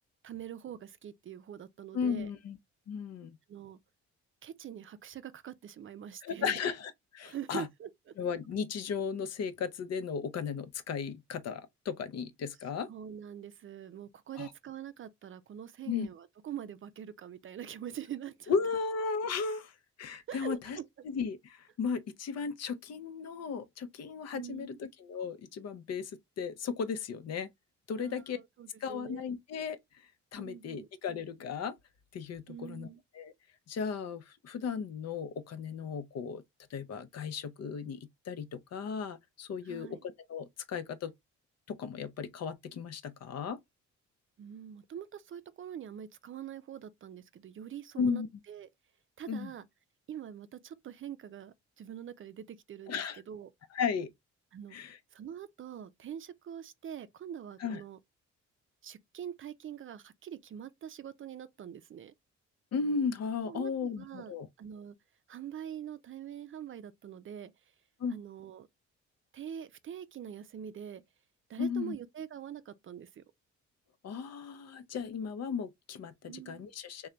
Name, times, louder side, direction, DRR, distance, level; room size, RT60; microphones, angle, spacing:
voice 1, 0.2-2.3 3.5-3.8 4.4-6.6 7.2-7.9 12.9-18.6 20.3-20.8 24.3-24.8 27.9-29.2 30.4-30.9 32.5-33.0 39.6-40.0 44.4-48.7 49.2-49.7 50.1-53.5 54.5-54.8 55.1-58.0 58.8-62.1 63.4-64.3 64.6-65.0 65.3-67.7 68.1-68.7 69.3-71.0 71.5-73.2 76.3-76.7, right 9 dB, 45° right, 0.4 m, -44 dB
voice 2, 1.9-2.6 2.9-3.4 6.2-7.7 8.2-12.9 14.4-14.5 15.9-16.1 18.5-19.7 20.0-20.8 21.0-26.1 26.4-27.5 27.9-28.4 28.8-29.8 30.3-31.7 32.1-32.9 33.1-33.3 33.7-36.4 36.7-41.1 41.7-43.6 48.0-48.3 49.3-49.5 52.9-53.2 53.7-54.1 54.7-55.0 57.6-57.8 62.7-64.5 68.0-68.2 71.6-72.0 74.0-77.1, left 6 dB, 55° left, 0.7 m, -35 dB
3.2 x 2.3 x 3.8 m
cardioid pair, 90°, 30 cm